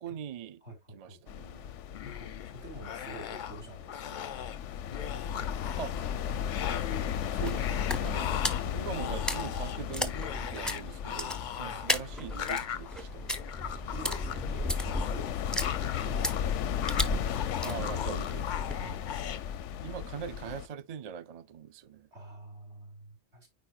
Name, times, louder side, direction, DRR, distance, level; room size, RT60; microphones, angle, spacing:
voice 1, 0.0-0.6 0.9-1.7 5.8-5.9 7.3-13.4 17.6-18.5 19.8-22.1, right 8 dB, 50° right, 0.5 m, -42 dB
voice 2, 0.6-1.2 2.0-4.2 11.6-12.2 13.7-15.3 15.6-16.5 18.7-19.0 22.1-23.5, right 1 dB, 70° right, 3.4 m, -48 dB
sound 1, 1.3-20.7, left 9 dB, 90° left, 0.9 m, -35 dB
sound 2, 1.9-2.5 2.8-3.6 3.9-4.6 4.9-6.1 6.5-7.2 7.5-16.4 16.7-19.4, left 9 dB, 55° left, 0.6 m, -39 dB
sound 3, 5.9-19.0, left 1 dB, ahead, 0.5 m, -37 dB
9.2 x 4.5 x 2.3 m
omnidirectional pair, 1.2 m